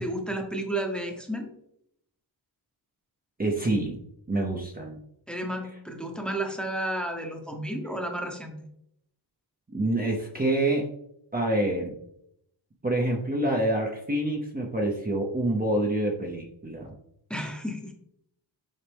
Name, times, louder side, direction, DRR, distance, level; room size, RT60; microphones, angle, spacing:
voice 1, 0.0-1.5 5.3-8.6 17.3-17.9, right 1 dB, ahead, 2 dB, 1.0 m, -32 dB
voice 2, 3.4-4.0 4.3-5.0 9.7-10.9 11.3-11.9 12.8-16.9, right 1 dB, 20° right, -1 dB, 0.8 m, -27 dB
7.4 x 5.0 x 3.5 m, 0.75 s
wide cardioid pair, 145°, 44 cm